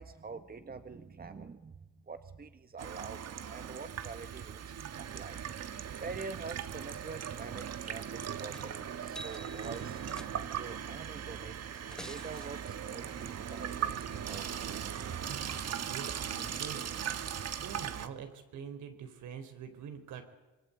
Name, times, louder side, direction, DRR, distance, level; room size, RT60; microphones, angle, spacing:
voice 1, 0.0-3.2 3.5-4.6 5.0-5.4 6.0-10.0 10.4-11.6 12.0-14.7, right 4 dB, 30° right, 9 dB, 1.7 m, -46 dB
Water tap faucet / Sink (filling or washing), 2.8-18.1, right 8 dB, 55° right, 1.7 m, -39 dB
sound 1, 8.5-8.8 9.0-10.7 11.7-12.5 14.7-14.8 15.1-15.6 16.6-16.7, equal, ahead, 1.8 m, -50 dB
voice 2, 15.7-16.9 17.5-20.2, right 7 dB, 75° right, 7 dB, 4.4 m, -45 dB
26.5 x 22.0 x 8.7 m, 1.2 s
cardioid pair, 90°, 30 cm